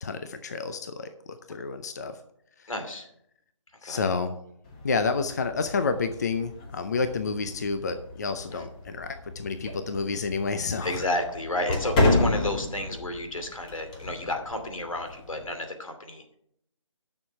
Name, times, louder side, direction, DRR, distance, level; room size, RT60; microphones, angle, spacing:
voice 1, 0.0-2.2 2.6-2.7 3.8-4.4 4.8-11.0, left 4 dB, 30° left, 9 dB, 0.6 m, -30 dB
voice 2, 2.7-3.1 3.8-4.0 10.8-16.2, left 1 dB, 85° left, 6 dB, 2.6 m, -31 dB
sound 1, 4.6-15.5, left 2 dB, 15° left, 1.0 m, -32 dB
10.5 x 6.5 x 5.8 m, 0.73 s
figure-of-eight pair, 165°, 17 cm